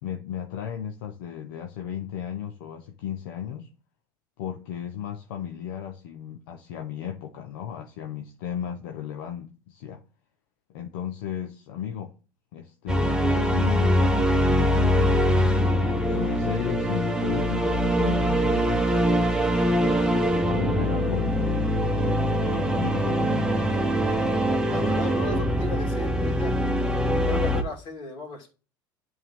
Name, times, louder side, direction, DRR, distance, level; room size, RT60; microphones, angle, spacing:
voice 1, 0.0-3.7 4.4-10.0 10.7-12.1 12.5-15.7 16.1-19.3 19.8-23.5, left 9 dB, 75° left, 0.8 m, -35 dB
sound 1, 12.9-27.6, equal, 5° right, 1.0 m, -23 dB
voice 2, 24.6-26.6 27.2-28.5, left 2 dB, 50° left, 2.6 m, -35 dB
10.5 x 3.6 x 3.5 m
hypercardioid pair, 80°, 11 cm